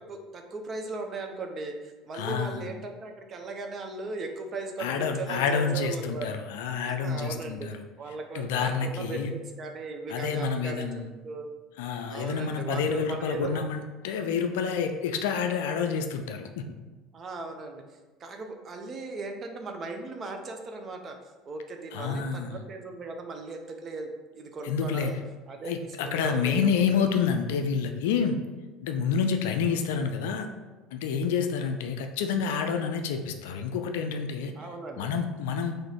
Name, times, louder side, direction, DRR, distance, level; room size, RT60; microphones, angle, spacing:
voice 1, 0.1-6.4 6.9-7.7 8.0-10.8 11.2-11.5 12.1-13.7 17.1-17.8 18.2-21.2 21.5-24.1 24.3-25.2 25.5-26.7 27.0-27.1 34.6-35.1, right 3 dB, 40° right, 4 dB, 0.6 m, -37 dB
voice 2, 2.1-2.6 4.8-7.8 8.3-9.3 10.1-11.1 11.8-16.7 21.9-22.6 24.6-25.2 25.6-28.4 28.8-30.5 30.9-34.5 35.0-35.7, left 6 dB, 65° left, 6 dB, 0.3 m, -28 dB
3.9 x 2.6 x 4.6 m, 1.2 s
figure-of-eight pair, 65°, 0 cm